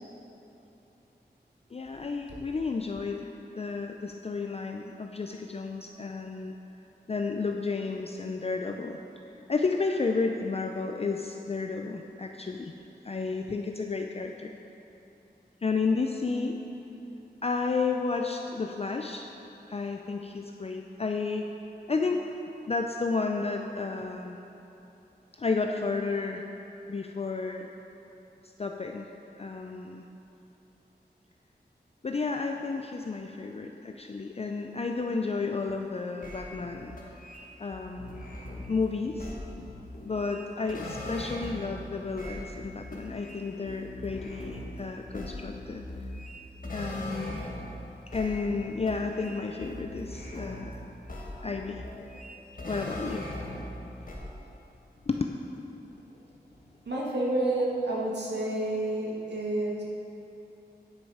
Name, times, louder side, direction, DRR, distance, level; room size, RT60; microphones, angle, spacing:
voice 1, 1.7-3.3 3.6-6.5 7.1-9.0 9.5-12.7 13.0-14.5 15.6-16.6 17.4-19.3 19.7-21.4 21.9-22.2 22.7-24.4 25.4-26.4 26.9-27.7 28.6-29.1 29.4-30.0 32.0-37.0 37.6-38.3 38.7-39.4 40.0-45.8 46.7-47.4 48.1-50.8 51.4-51.8 52.6-53.2 55.1-55.3 57.5-57.6, left 4 dB, 35° left, 3 dB, 0.4 m, -32 dB
sound 1, 36.2-41.8 42.1-47.8 48.1-50.8 51.1-53.8 54.1-54.2, left 1 dB, 50° left, 1.5 m, -40 dB
voice 2, 56.9-59.8, right 1 dB, 80° right, -4 dB, 1.7 m, -29 dB
9.7 x 6.4 x 4.8 m, 3.0 s
wide cardioid pair, 75°, 18 cm